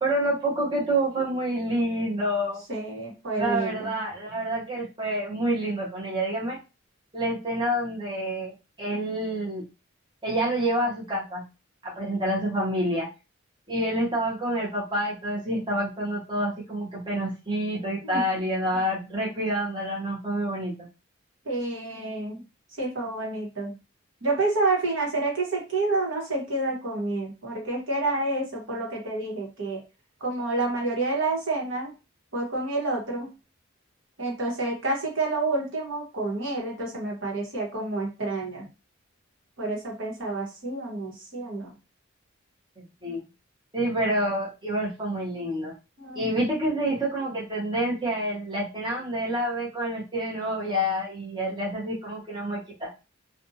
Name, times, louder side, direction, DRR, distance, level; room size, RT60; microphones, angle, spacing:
voice 1, 0.0-2.6 3.4-6.6 7.1-8.5 8.8-9.6 10.2-11.4 11.8-13.1 13.7-20.7 43.0-43.2 43.7-45.7 46.2-52.9, right 1 dB, 25° right, -5 dB, 0.9 m, -28 dB
voice 2, 2.7-3.9 18.0-18.3 21.4-22.4 22.8-23.8 24.2-29.8 30.2-31.9 32.3-33.3 34.2-38.7 39.6-41.7 46.0-46.4, right 2 dB, 65° right, -2 dB, 1.1 m, -29 dB
2.5 x 2.3 x 2.7 m, 0.29 s
head